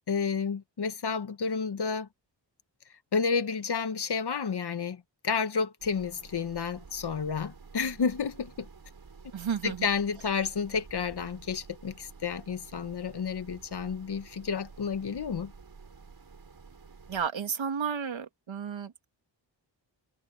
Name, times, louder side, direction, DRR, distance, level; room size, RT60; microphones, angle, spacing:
voice 1, 0.1-2.1 3.1-8.7 9.6-15.5, left 5 dB, 60° left, 1.4 m, -31 dB
sound 1, 5.8-17.3, right 4 dB, 50° right, 7.4 m, -51 dB
voice 2, 9.3-9.9 17.1-19.1, right 7 dB, 85° right, 2.5 m, -32 dB
wide cardioid pair, 110°, 45 cm